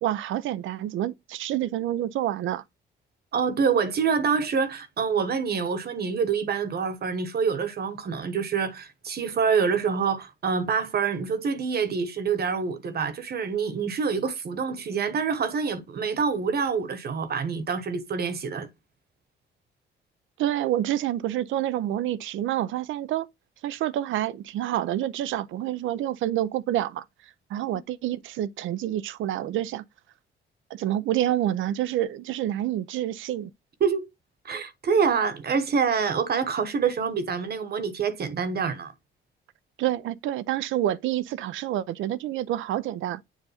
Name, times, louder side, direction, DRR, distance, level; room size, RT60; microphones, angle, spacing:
voice 1, 0.0-2.6 20.4-23.3 23.6-27.0 27.5-29.8 30.7-33.5 39.8-43.2, right 12 dB, 80° right, 0.6 m, -28 dB
voice 2, 3.3-18.7 33.8-34.1 34.4-38.9, right 6 dB, 55° right, 1.2 m, -26 dB
7.3 x 2.5 x 5.6 m
cardioid pair, 90°, 20 cm